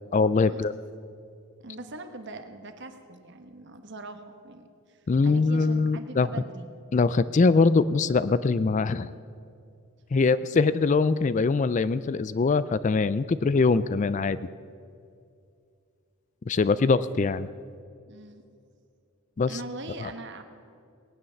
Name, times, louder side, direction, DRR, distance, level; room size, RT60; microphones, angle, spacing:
voice 1, 0.1-0.7 5.1-6.3 6.9-9.1 10.1-14.4 16.5-17.5 19.4-19.6 20.0-20.1, left 4 dB, 35° left, 15 dB, 0.3 m, -23 dB
voice 2, 1.6-6.7 10.1-10.3 18.1-18.4 19.5-20.4, right 2 dB, 55° right, 7 dB, 1.3 m, -42 dB
19.0 x 9.6 x 7.0 m, 2.4 s
head